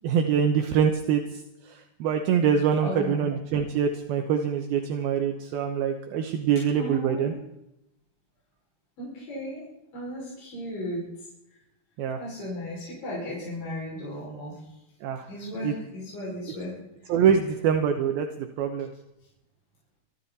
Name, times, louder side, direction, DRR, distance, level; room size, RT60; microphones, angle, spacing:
voice 1, 0.0-7.3 12.0-12.2 15.0-15.3 15.6-15.7 17.1-18.9, right 7 dB, 75° right, 5 dB, 2.7 m, -25 dB
voice 2, 2.8-3.2 6.8-7.3 9.0-9.6 9.9-11.0 12.2-14.6 15.3-16.7, left 1 dB, 55° left, -6 dB, 7.4 m, -35 dB
26.5 x 13.0 x 4.2 m, 0.85 s
omnidirectional pair, 4.6 m